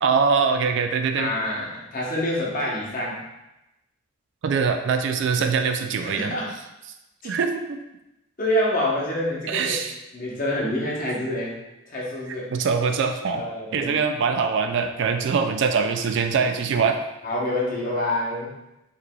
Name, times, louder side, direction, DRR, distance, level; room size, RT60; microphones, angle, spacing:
voice 1, 0.0-1.3 4.4-6.3 7.2-7.8 9.5-10.0 11.1-11.2 12.5-13.4 13.7-17.0, right 5 dB, 60° right, 6 dB, 0.3 m, -23 dB
voice 2, 1.2-3.2 6.0-6.5 8.4-9.8 10.1-11.5 11.9-12.5 13.3-13.9 17.2-18.5, left 1 dB, 40° left, -4 dB, 0.9 m, -26 dB
4.6 x 3.2 x 2.3 m, 0.94 s
head